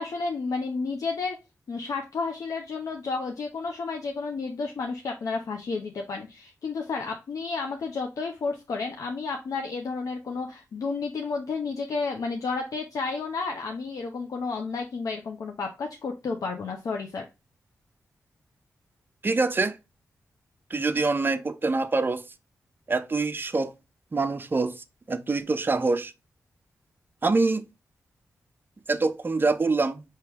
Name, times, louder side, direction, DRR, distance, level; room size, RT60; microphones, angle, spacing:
voice 1, 0.0-1.4 1.7-17.3, left 4 dB, 70° left, 0.7 m, -31 dB
voice 2, 19.2-19.8 20.7-22.2 22.9-23.7 24.1-26.1 27.2-27.6 28.9-30.0, right 3 dB, 35° right, 0.6 m, -25 dB
4.7 x 3.0 x 3.3 m
cardioid pair, 55°, 6 cm